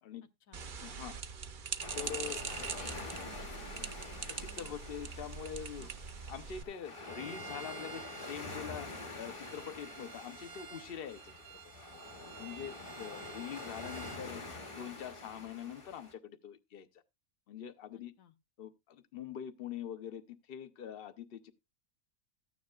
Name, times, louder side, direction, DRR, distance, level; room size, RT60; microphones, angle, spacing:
sound 1, 0.5-6.6, right 6 dB, 45° right, 0.7 m, -42 dB
voice 1, 0.8-1.2 1.9-2.4 4.3-5.9 6.3-8.9 9.2-11.6 12.4-14.4 14.7-16.9 17.5-18.1 18.6-21.5, left 9 dB, 50° left, 0.8 m, -44 dB
sound 2, 1.8-16.1, left 3 dB, 25° left, 0.9 m, -47 dB
voice 2, 2.0-4.7 5.8-5.9 12.8-13.0 18.2-18.3, left 7 dB, 80° left, 1.3 m, -56 dB
Bowed string instrument, 7.0-14.3, right 7 dB, 70° right, 1.1 m, -51 dB
14.0 x 9.5 x 2.4 m
omnidirectional pair, 1.5 m